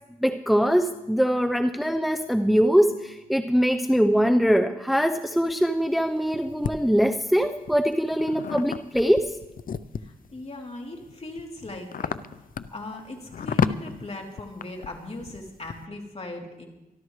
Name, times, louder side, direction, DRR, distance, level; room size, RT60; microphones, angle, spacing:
voice 1, 0.2-9.4, equal, ahead, 6 dB, 0.8 m, -22 dB
sound 1, 5.5-6.7 7.4-10.3 10.8-15.9, left 7 dB, 60° left, 0.6 m, -32 dB
voice 2, 10.0-12.2 12.7-16.7, left 2 dB, 40° left, 0 dB, 3.3 m, -39 dB
26.0 x 12.0 x 3.3 m, 0.99 s
cardioid pair, 60°, 16 cm